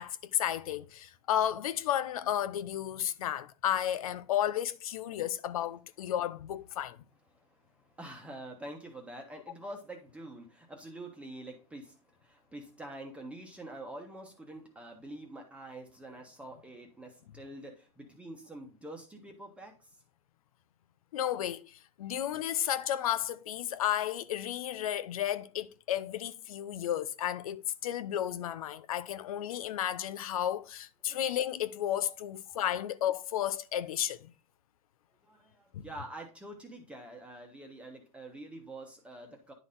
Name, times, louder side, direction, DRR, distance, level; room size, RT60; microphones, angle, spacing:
voice 1, 0.0-7.0 21.1-34.3 35.7-35.9, left 11 dB, 90° left, 0.6 m, -33 dB
voice 2, 7.7-19.9 31.1-31.3 32.5-32.6 35.2-39.5, right 1 dB, 5° right, 1.2 m, -46 dB
10.0 x 4.0 x 3.8 m
supercardioid pair, 135°, 18 cm